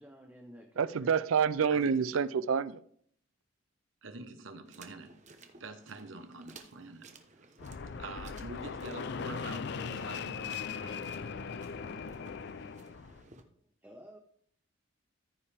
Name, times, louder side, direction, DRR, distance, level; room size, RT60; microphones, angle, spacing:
voice 1, 0.0-1.1 13.4-14.2, equal, 10° right, 1 dB, 0.8 m, -53 dB
voice 2, 0.8-2.8, right 6 dB, 85° right, 18 dB, 0.4 m, -28 dB
voice 3, 1.7-2.2 4.0-5.1 5.6-7.4 7.8-10.9, right 3 dB, 70° right, 7 dB, 1.1 m, -46 dB
sound 1, 4.7-13.4, right 3 dB, 35° right, 0.9 m, -57 dB
Fixed-wing aircraft airplane, 7.6-13.2, left 5 dB, 55° left, 0.4 m, -39 dB
14.0 x 5.6 x 3.4 m, 0.62 s
head